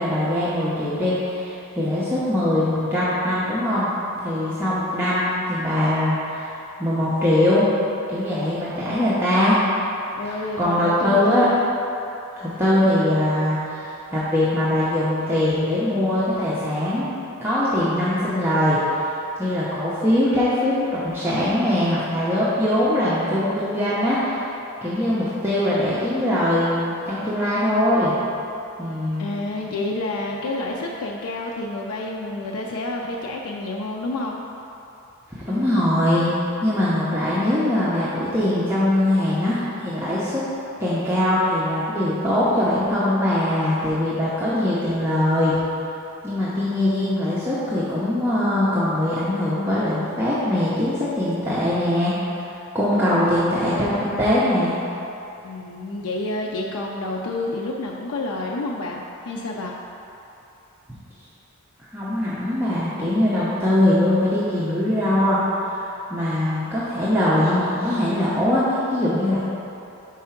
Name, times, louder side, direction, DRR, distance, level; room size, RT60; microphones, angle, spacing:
voice 1, 0.0-3.9 4.2-6.5 6.8-7.7 8.1-9.6 10.6-11.5 12.4-17.1 17.4-18.8 19.4-24.4 24.8-28.2 28.8-29.3 35.3-36.3 36.6-40.4 40.8-45.6 46.2-54.8 61.9-65.4 66.1-69.4, left 1 dB, 10° right, -11 dB, 0.7 m, -22 dB
voice 2, 10.1-11.5 29.2-34.4 53.4-53.5 55.4-59.7, left 2 dB, 75° left, -1 dB, 0.4 m, -29 dB
4.7 x 4.3 x 5.7 m, 2.9 s
head